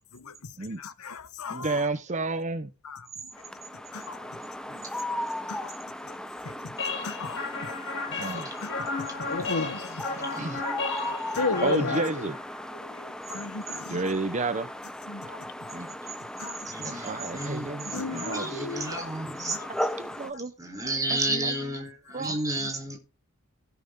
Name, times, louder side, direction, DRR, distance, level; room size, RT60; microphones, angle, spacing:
voice 1, 0.1-1.9 2.8-3.1 3.7-4.4 4.7-4.8 5.5-5.7 6.0-6.2 6.4-12.3 12.7-14.0 15.1-15.7 16.4-16.7 17.9-19.1 19.4-19.7 20.2-20.3 22.2-23.0, left 3 dB, 85° left, 1.0 m, -36 dB
voice 2, 1.5-2.7 8.2-8.5 10.4-10.6 11.6-12.4 13.9-14.7 15.7-15.9 16.8-18.7 20.0-20.5 21.1-21.5 22.1-22.4, right 3 dB, 35° right, 0.8 m, -31 dB
sound 1, 3.3-20.3, left 1 dB, 5° left, 0.7 m, -37 dB
sound 2, 6.8-12.7, left 3 dB, 55° left, 5.1 m, -34 dB
voice 3, 8.2-8.5 10.3-10.6 13.8-14.0 14.3-14.4 15.7-15.9 16.6-19.7 20.6-23.0, right 2 dB, 15° right, 3.7 m, -32 dB
17.0 x 6.0 x 3.6 m
head